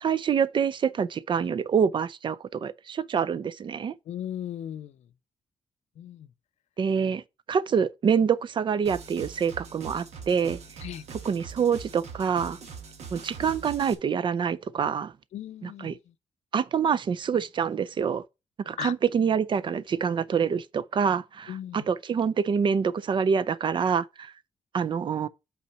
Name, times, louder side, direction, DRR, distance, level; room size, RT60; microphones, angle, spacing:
voice 1, 0.0-3.9 6.8-7.2 7.5-10.6 11.2-12.6 13.1-15.1 15.6-16.0 16.5-18.2 18.7-24.3 24.7-25.3, right 7 dB, 45° right, 0.4 m, -26 dB
voice 2, 4.1-4.9 6.0-6.3 10.8-11.0 15.3-16.0 18.8-18.9 21.5-21.8, left 11 dB, 80° left, 0.5 m, -37 dB
sound 1, 8.8-13.9, right 5 dB, 70° right, 1.3 m, -42 dB
5.6 x 4.2 x 5.7 m
cardioid pair, 115°, 11 cm